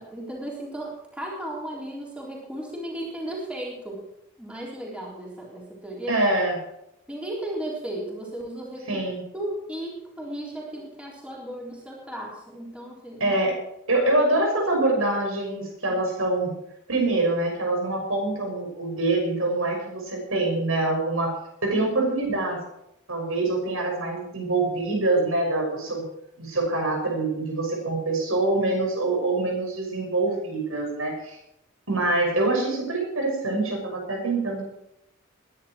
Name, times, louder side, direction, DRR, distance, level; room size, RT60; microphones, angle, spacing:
voice 1, 0.0-4.1 4.4-6.2 7.1-8.9 9.3-13.4 15.9-16.0, right 1 dB, 5° right, -3 dB, 3.8 m, -35 dB
voice 2, 6.1-6.6 8.9-9.2 13.2-13.5 13.9-16.5 16.9-21.3 21.6-22.6 23.1-26.0 26.4-31.4 31.9-34.6, right 2 dB, 80° right, 1 dB, 6.3 m, -25 dB
21.0 x 10.5 x 4.6 m, 0.78 s
head